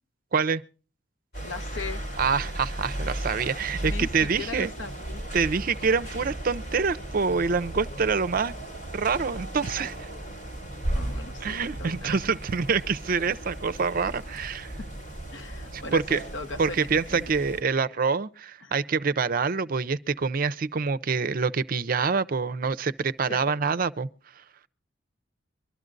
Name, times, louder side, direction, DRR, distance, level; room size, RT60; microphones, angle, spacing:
voice 1, 0.3-0.6 2.2-4.7 5.3-8.5 8.9-10.1 11.4-14.7 15.7-16.2 16.6-24.1, right 5 dB, 50° right, 0.5 m, -26 dB
sound 1, 1.3-17.6, right 1 dB, 60° left, 3.9 m, -36 dB
voice 2, 1.4-2.0 3.8-5.2 10.9-12.1 15.3-17.3 18.6-18.7 23.3-23.6, left 3 dB, 85° left, 0.8 m, -39 dB
24.0 x 12.0 x 2.5 m
head